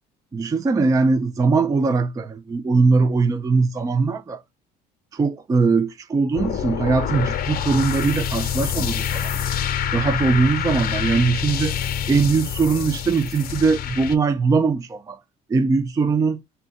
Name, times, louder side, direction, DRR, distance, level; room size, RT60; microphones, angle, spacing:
voice 1, 0.3-4.4 5.1-9.5 9.9-11.8 12.1-15.2 15.5-16.4, right 4 dB, 15° right, 0.3 m, -21 dB
sound 1, 6.3-14.2, left 9 dB, 50° left, 0.7 m, -26 dB
2.7 x 2.2 x 3.9 m
supercardioid pair, 75°, 20 cm